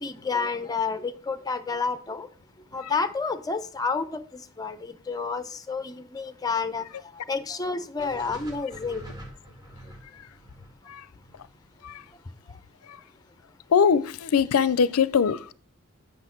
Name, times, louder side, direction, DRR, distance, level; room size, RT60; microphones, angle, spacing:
voice 1, 0.0-2.3 2.7-6.8 7.3-9.1, left 4 dB, 15° left, 0.6 m, -30 dB
sound 1, 8.0-12.2, right 1 dB, 20° right, 1.8 m, -46 dB
voice 2, 13.7-15.5, left 6 dB, 80° left, 0.4 m, -21 dB
7.9 x 6.6 x 4.4 m
head